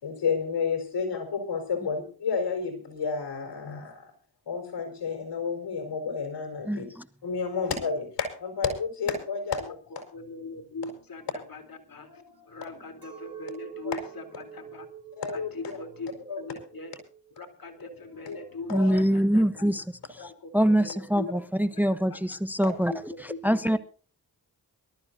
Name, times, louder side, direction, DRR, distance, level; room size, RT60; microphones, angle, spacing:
voice 1, 0.0-4.1 4.5-6.9 7.2-9.6 9.9-10.0 13.8-14.0 15.2-15.5 16.3-16.4 18.3-18.4 18.7-19.0 22.6-22.7, left 5 dB, 75° left, 5 dB, 4.8 m, -30 dB
voice 2, 6.7-7.0 18.7-19.8 20.5-23.1 23.4-23.8, equal, 5° right, 14 dB, 0.9 m, -24 dB
voice 3, 10.1-14.9 15.3-17.0 17.3-19.7 20.1-20.5 20.8-21.4 21.7-21.8 22.1-22.2 22.7-23.8, left 3 dB, 55° left, 6 dB, 3.6 m, -41 dB
Chink clink, 13.0-18.5, right 8 dB, 60° right, 5.1 m, -46 dB
23.5 x 13.5 x 2.8 m, 0.41 s
supercardioid pair, 45°, 42 cm